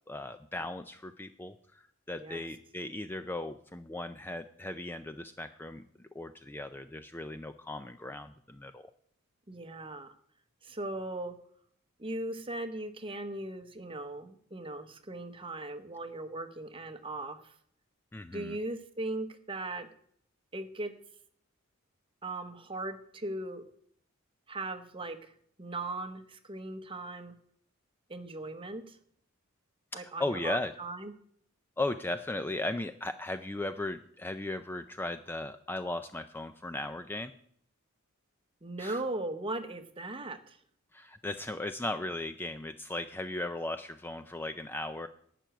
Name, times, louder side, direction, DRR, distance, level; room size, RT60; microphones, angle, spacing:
voice 1, 0.1-8.9 18.1-18.6 29.9-30.7 31.8-37.3 38.8-39.0 40.9-45.1, left 2 dB, 10° left, 10 dB, 0.4 m, -37 dB
voice 2, 9.5-10.1 10.6-11.3 12.0-17.5 18.3-19.9 20.5-20.9 22.2-23.7 24.5-25.3 25.6-27.3 28.1-29.0 29.9-31.1 38.6-40.6, right 2 dB, 25° right, 8 dB, 1.0 m, -38 dB
11.5 x 6.0 x 9.1 m, 0.64 s
head